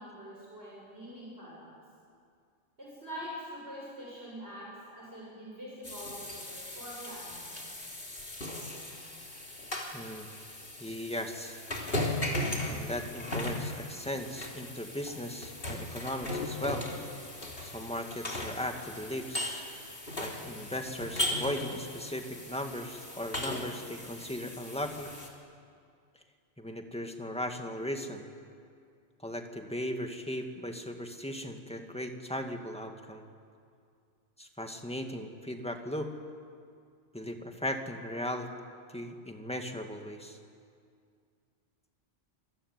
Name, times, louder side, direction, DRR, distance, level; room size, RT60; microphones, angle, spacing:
voice 1, 0.0-1.7 2.8-7.5, equal, 60° right, -5 dB, 7.7 m, -44 dB
sound 1, 5.8-25.3, left 1 dB, 50° left, 3.6 m, -38 dB
voice 2, 9.9-10.3 10.8-11.6 12.7-16.9 17.6-19.7 20.2-25.1 26.6-28.3 29.2-33.2 34.4-36.1 37.1-38.5 38.9-40.4, left 1 dB, 5° left, 4 dB, 2.0 m, -37 dB
26.5 x 22.5 x 9.7 m, 2.3 s
omnidirectional pair, 1.2 m